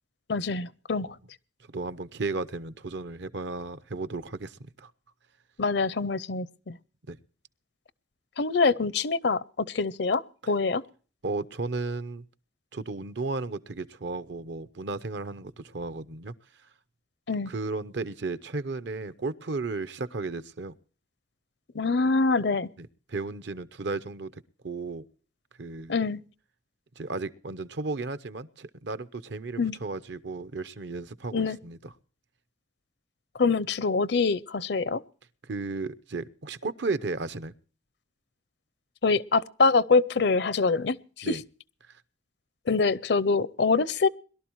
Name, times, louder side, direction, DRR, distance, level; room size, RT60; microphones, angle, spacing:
voice 1, 0.3-1.2 5.6-6.8 8.4-10.8 17.3-17.5 21.7-22.7 25.9-26.2 29.6-29.8 31.3-31.6 33.4-35.0 39.0-41.4 42.7-44.1, left 4 dB, 60° left, 0.6 m, -25 dB
voice 2, 1.7-4.9 7.1-7.2 11.2-12.2 12.7-16.3 17.5-20.7 22.8-24.3 24.6-25.0 25.6-25.9 27.0-31.8 35.5-37.5 41.2-41.4, right 3 dB, 65° right, 0.8 m, -34 dB
22.0 x 12.0 x 3.1 m
head